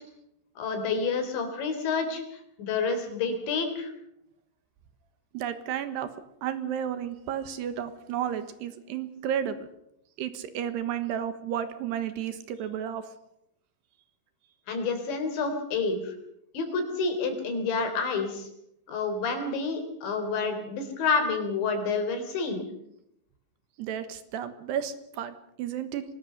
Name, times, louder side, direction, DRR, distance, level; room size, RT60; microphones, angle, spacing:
voice 1, 0.6-3.9 14.7-16.2 16.5-18.5 18.9-22.6, left 4 dB, 80° left, 7 dB, 5.8 m, -29 dB
voice 2, 5.3-6.1 6.4-9.7 10.2-13.1 23.8-26.0, right 9 dB, 75° right, 11 dB, 3.3 m, -32 dB
24.0 x 19.0 x 6.8 m, 0.79 s
omnidirectional pair, 5.1 m